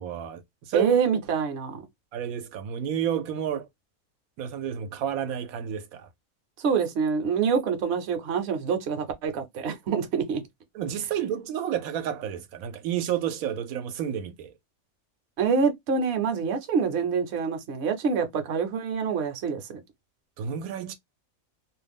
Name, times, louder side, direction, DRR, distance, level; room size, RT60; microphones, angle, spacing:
voice 1, 0.0-0.9 2.1-3.7 4.4-6.1 10.7-14.5 20.4-20.9, right 9 dB, 85° right, 1.0 m, -31 dB
voice 2, 0.7-1.9 6.6-10.4 15.4-19.8, right 6 dB, 60° right, 0.8 m, -26 dB
2.5 x 2.1 x 3.4 m
omnidirectional pair, 1.4 m